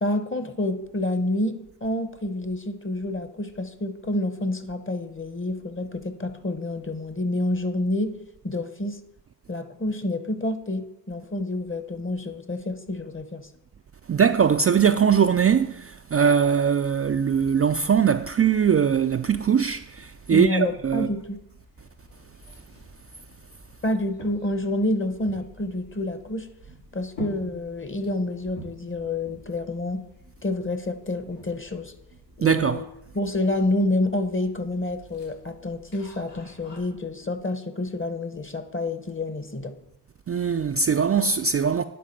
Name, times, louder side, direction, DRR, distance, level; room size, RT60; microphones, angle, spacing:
voice 1, 0.0-8.2 8.4-9.0 9.5-13.5 20.3-21.4 23.8-26.5 26.9-30.0 30.4-31.9 32.4-32.8 33.1-39.7, left 1 dB, 30° left, 1.0 m, -28 dB
voice 2, 14.1-21.1 32.4-32.8 40.3-41.8, right 7 dB, 35° right, 0.4 m, -21 dB
sound 1, 17.0-36.8, right 1 dB, 75° left, 3.0 m, -48 dB
10.5 x 4.0 x 5.2 m
cardioid pair, 45°, 43 cm